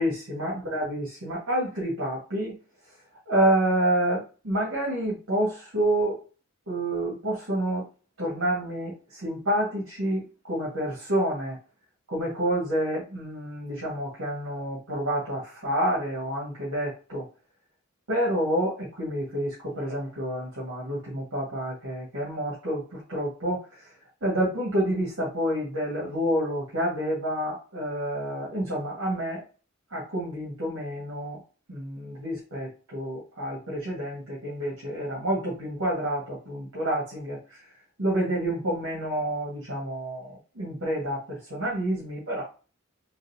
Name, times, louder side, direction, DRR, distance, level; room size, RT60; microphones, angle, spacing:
voice 1, 0.0-2.6 3.3-6.2 6.7-7.9 8.2-11.6 12.1-17.2 18.1-23.7 24.2-29.4 29.9-31.4 31.7-37.6 38.0-42.4, right 1 dB, 80° right, -6 dB, 1.6 m, -28 dB
4.0 x 2.4 x 2.7 m, 0.34 s
head